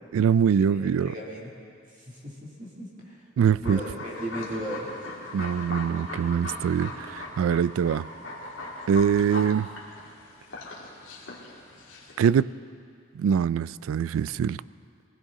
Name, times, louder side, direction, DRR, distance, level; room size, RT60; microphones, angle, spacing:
voice 1, 0.1-1.1 3.4-3.8 5.3-8.1 8.9-9.7 12.2-12.5 13.1-14.6, right 7 dB, 80° right, 19 dB, 0.3 m, -23 dB
voice 2, 0.7-1.5 2.0-3.2 3.6-4.9, right 1 dB, 40° right, -4 dB, 2.6 m, -36 dB
sound 1, 3.6-12.3, left 2 dB, 70° left, 2.3 m, -39 dB
20.0 x 17.0 x 3.7 m, 2.4 s
head